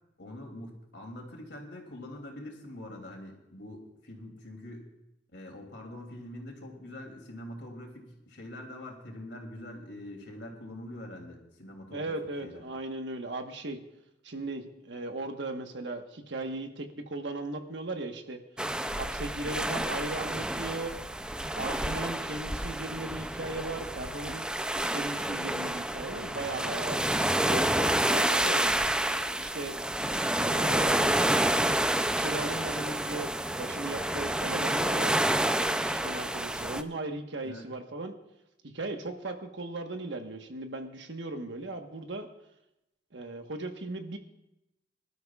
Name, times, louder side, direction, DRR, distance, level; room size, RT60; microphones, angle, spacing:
voice 1, 0.2-4.9 5.3-12.6 37.4-37.7, left 1 dB, 70° left, 2 dB, 2.9 m, -44 dB
voice 2, 11.9-13.8 14.2-18.4 18.9-21.0 21.5-24.5 24.9-28.7 29.4-29.8 30.4-31.1 32.1-35.1 35.8-38.2 38.7-42.3 43.1-44.2, right 2 dB, 80° right, 5 dB, 1.3 m, -37 dB
sound 1, 18.6-36.8, right 1 dB, 5° right, 0.4 m, -29 dB
25.0 x 12.5 x 2.4 m, 0.90 s
head